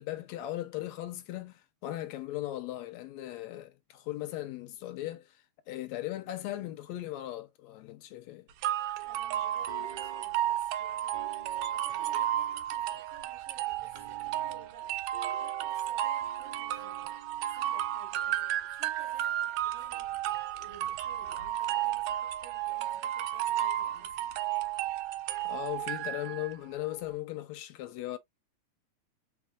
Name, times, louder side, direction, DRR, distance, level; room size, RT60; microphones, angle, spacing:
voice 1, 0.0-8.5 25.4-28.2, left 15 dB, 80° left, 1.7 m, -38 dB
sound 1, 8.6-26.5, right 12 dB, 75° right, 1.7 m, -33 dB
voice 2, 9.0-20.2 20.5-24.4, right 4 dB, 60° right, 2.6 m, -57 dB
sound 2, 9.7-10.5 11.1-12.8 13.8-18.0 18.3-18.4, right 4 dB, 20° right, 1.6 m, -52 dB
4.5 x 4.1 x 2.3 m
omnidirectional pair, 3.5 m